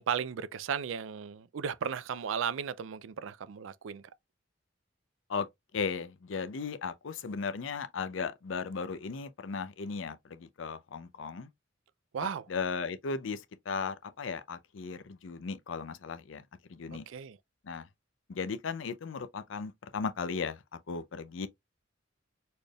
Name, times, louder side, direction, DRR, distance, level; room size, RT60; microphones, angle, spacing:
voice 1, 0.0-4.0 12.1-12.4 16.9-17.4, right 7 dB, 80° right, 0.4 m, -35 dB
voice 2, 5.7-11.5 12.2-16.4 16.7-17.1 17.6-17.9 18.3-21.5, left 5 dB, 75° left, 0.5 m, -36 dB
4.2 x 3.3 x 2.3 m
head